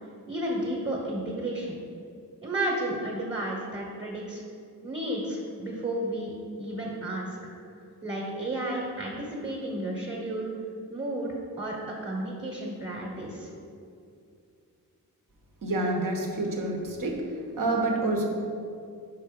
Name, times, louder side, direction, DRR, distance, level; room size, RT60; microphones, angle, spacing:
voice 1, 0.3-1.8 2.4-4.4 4.8-6.3 6.6-7.3 8.0-10.5 10.9-13.5, right 1 dB, 35° right, -3 dB, 1.3 m, -32 dB
voice 2, 15.6-17.3 17.6-18.3, right 2 dB, 65° right, 0 dB, 1.2 m, -28 dB
5.7 x 4.6 x 5.3 m, 2.4 s
wide cardioid pair, 90°, 36 cm